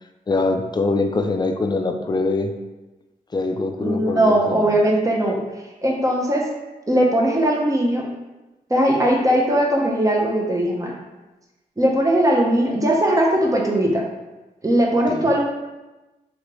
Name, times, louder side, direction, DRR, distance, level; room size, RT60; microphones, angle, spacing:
voice 1, 0.3-2.5 3.3-5.0 15.1-15.3, left 3 dB, 30° left, 5 dB, 0.4 m, -23 dB
voice 2, 3.8-5.4 5.8-6.5 6.9-8.1 8.7-10.9 11.8-14.0 14.6-15.4, right 1 dB, 20° right, -1 dB, 0.8 m, -19 dB
3.2 x 2.9 x 3.0 m, 1.1 s
cardioid pair, 55°, 15 cm